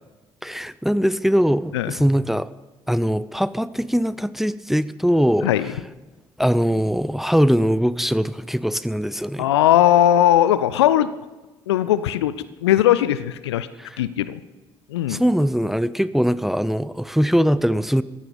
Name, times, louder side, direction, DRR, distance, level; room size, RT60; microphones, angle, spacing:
voice 1, 0.4-2.5 2.9-5.5 6.4-9.5 13.8-13.9 15.1-18.0, equal, ahead, 17 dB, 0.7 m, -21 dB
voice 2, 9.4-11.1 11.7-12.3 12.6-13.7 14.0-14.4 14.9-15.2, left 12 dB, 75° left, 16 dB, 0.6 m, -18 dB
18.0 x 15.5 x 5.2 m, 1.1 s
figure-of-eight pair, 50°, 14 cm